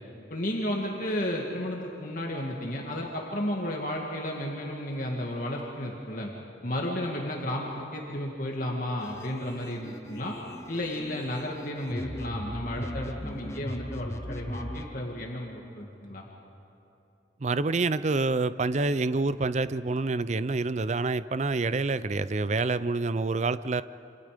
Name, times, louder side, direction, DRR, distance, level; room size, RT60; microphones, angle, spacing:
voice 1, 0.3-6.3 6.6-10.4 10.7-16.3, left 1 dB, 45° left, -1 dB, 2.3 m, -33 dB
sound 1, 9.0-14.9, left 1 dB, 15° left, 0.9 m, -38 dB
voice 2, 17.4-23.8, right 3 dB, 40° right, 14 dB, 0.5 m, -27 dB
28.0 x 26.5 x 5.2 m, 2.9 s
head